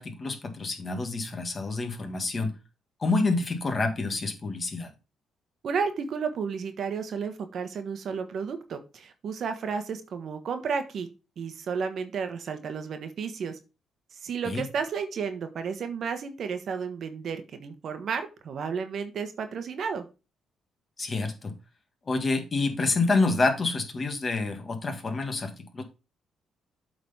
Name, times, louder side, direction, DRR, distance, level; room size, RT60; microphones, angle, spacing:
voice 1, 0.0-2.5 3.0-4.9 14.4-14.6 21.0-21.5 22.1-25.8, left 3 dB, 35° left, 1.8 m, -28 dB
voice 2, 5.6-11.1 11.4-13.6 14.1-20.0, right 6 dB, 60° right, 1.3 m, -32 dB
8.0 x 4.0 x 5.6 m
cardioid pair, 90°, 0 cm